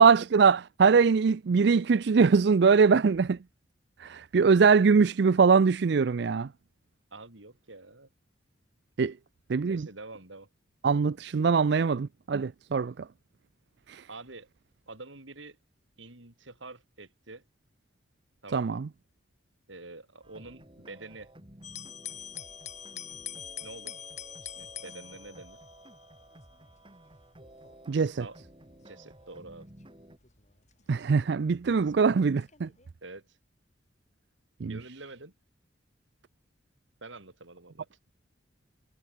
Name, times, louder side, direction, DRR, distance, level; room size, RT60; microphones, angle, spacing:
voice 1, 0.0-3.4 4.0-6.5 9.0-9.1 9.5-9.9 10.8-13.0 13.9-14.0 18.5-18.9 27.9-28.2 30.9-32.7 34.6-34.8, right 5 dB, 60° right, 0.4 m, -22 dB
voice 2, 7.1-8.1 9.6-10.5 14.1-14.5 14.9-15.6 16.0-17.4 18.4-18.8 19.7-21.3 23.6-23.9 24.4-25.6 27.9-28.4 28.8-29.7 33.0-33.4 34.6-35.3 37.0-37.9, right 3 dB, 80° right, 3.7 m, -47 dB
sound 1, 20.2-30.2, right 1 dB, 25° right, 3.3 m, -53 dB
sound 2, 21.6-31.8 32.4-32.9, left 10 dB, 35° left, 3.4 m, -45 dB
head